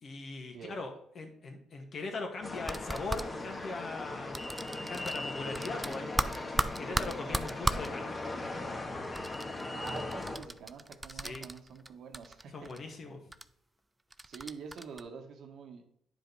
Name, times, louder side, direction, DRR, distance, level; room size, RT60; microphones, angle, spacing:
voice 1, 0.0-4.4 4.9-8.4 11.1-11.5 12.5-13.3, left 3 dB, 50° left, 3 dB, 1.9 m, -41 dB
sound 1, 2.4-10.4, left 2 dB, 25° left, 1.4 m, -39 dB
sound 2, 2.5-3.2 4.3-5.2 5.5-7.9 9.1-11.9 12.1-12.8 13.3-13.4 14.1-15.0, right 2 dB, 15° right, 0.4 m, -35 dB
voice 2, 9.7-12.7 14.2-15.8, right 6 dB, 70° right, 4 dB, 1.5 m, -46 dB
9.7 x 5.1 x 4.1 m, 0.70 s
cardioid pair, 90°, 0 cm